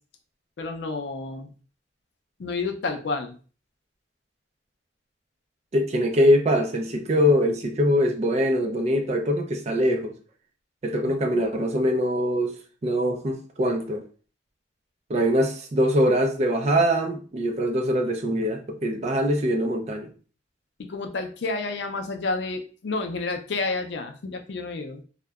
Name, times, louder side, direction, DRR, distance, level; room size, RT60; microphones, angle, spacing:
voice 1, 0.6-1.5 2.4-3.3 11.0-11.4 20.8-25.0, left 3 dB, 70° left, 0.4 m, -30 dB
voice 2, 5.7-10.1 10.8-12.6 12.8-14.0 15.1-20.1, equal, 35° right, 0.4 m, -23 dB
2.7 x 2.1 x 2.2 m
head